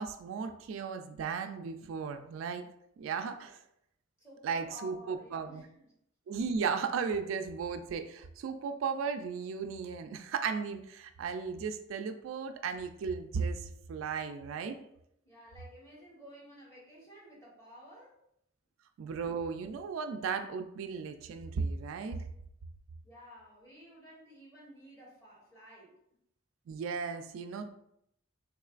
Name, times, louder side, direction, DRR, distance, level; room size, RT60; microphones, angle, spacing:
voice 1, 0.0-2.6 3.0-3.6 4.4-5.6 6.3-14.8 19.0-22.2 26.7-27.7, right 5 dB, 75° right, 8 dB, 0.3 m, -35 dB
voice 2, 4.2-5.9 15.2-18.2 23.0-25.9, equal, 15° left, -5 dB, 1.1 m, -53 dB
3.5 x 3.1 x 2.4 m, 0.75 s
head